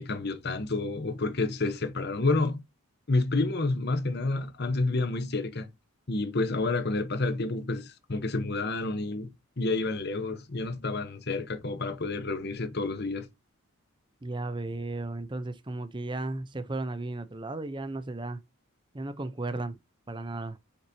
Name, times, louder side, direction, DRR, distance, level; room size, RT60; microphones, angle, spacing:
voice 1, 0.0-2.6 3.1-5.7 6.1-13.3, left 3 dB, 50° left, 0.9 m, -29 dB
voice 2, 14.2-18.4 18.9-19.8 20.1-20.6, right 2 dB, 20° right, 0.6 m, -35 dB
6.5 x 6.0 x 2.7 m
head